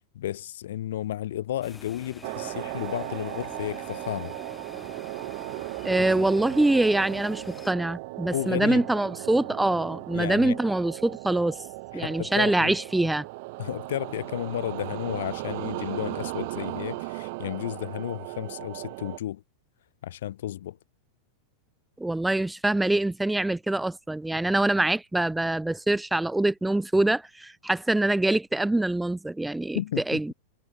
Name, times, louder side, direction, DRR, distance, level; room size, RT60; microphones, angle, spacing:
voice 1, 0.1-4.3 6.0-6.1 8.3-8.8 10.1-10.6 11.9-12.8 13.6-19.4 20.0-20.8 29.7-30.2, left 12 dB, 75° left, 0.6 m, -32 dB
sound 1, 1.6-7.7, left 4 dB, 15° left, 1.7 m, -47 dB
sound 2, 2.2-19.2, right 25 dB, 60° right, 2.5 m, -37 dB
voice 2, 5.8-11.6 11.9-13.2 22.0-29.8 30.1-30.3, right 2 dB, 5° right, 0.5 m, -24 dB
hypercardioid pair, 115°, 0 cm